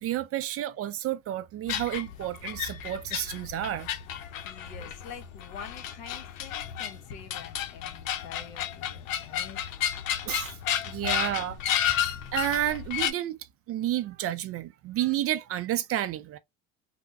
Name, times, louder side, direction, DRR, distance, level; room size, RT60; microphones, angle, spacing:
voice 1, 0.0-3.9 10.3-10.6 10.8-11.6 11.8-13.4 13.7-16.4, right 13 dB, 40° right, 0.4 m, -31 dB
sound 1, 1.7-13.1, left 10 dB, 90° left, 0.6 m, -32 dB
voice 2, 4.2-9.6, left 6 dB, 65° left, 1.1 m, -46 dB
3.4 x 2.1 x 2.5 m
supercardioid pair, 90°, 39 cm